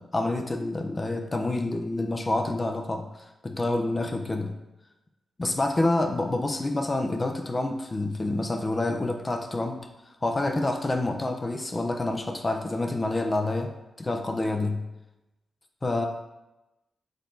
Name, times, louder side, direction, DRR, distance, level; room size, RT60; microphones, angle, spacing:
voice 1, 0.0-4.5 5.4-9.9 10.2-13.7 14.0-14.8 15.8-16.1, left 2 dB, 35° left, 4 dB, 0.6 m, -28 dB
4.1 x 3.2 x 3.9 m, 0.97 s
supercardioid pair, 45°, 0 cm